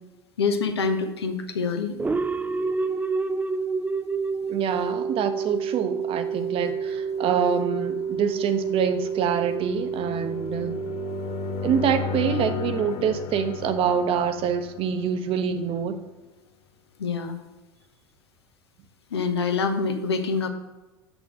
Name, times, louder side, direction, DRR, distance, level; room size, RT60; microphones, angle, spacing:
voice 1, 0.4-2.0 17.0-17.4 19.1-20.5, left 4 dB, 85° left, 7 dB, 0.8 m, -26 dB
sound 1, 2.0-12.7, right 5 dB, 10° right, 0.4 m, -29 dB
voice 2, 4.5-10.8 11.6-16.0, right 7 dB, 45° right, 9 dB, 0.8 m, -26 dB
sound 2, 5.2-16.0, left 6 dB, 50° left, 0.7 m, -36 dB
6.3 x 6.2 x 5.0 m, 1.1 s
hypercardioid pair, 80°, 13 cm